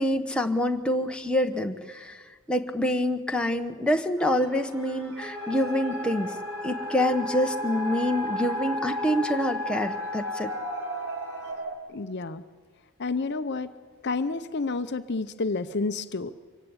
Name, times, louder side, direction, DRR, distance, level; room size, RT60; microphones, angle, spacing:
voice 1, 0.0-2.2 2.5-6.3 6.6-10.5, left 1 dB, 5° left, 4 dB, 1.0 m, -26 dB
sound 1, 4.2-11.5, equal, 80° right, 5.5 m, -44 dB
sound 2, 5.2-11.8, equal, 40° right, 2.3 m, -33 dB
voice 2, 11.9-12.4 13.0-13.7 14.0-16.3, left 3 dB, 50° left, 11 dB, 0.7 m, -29 dB
24.5 x 16.0 x 9.7 m, 1.5 s
head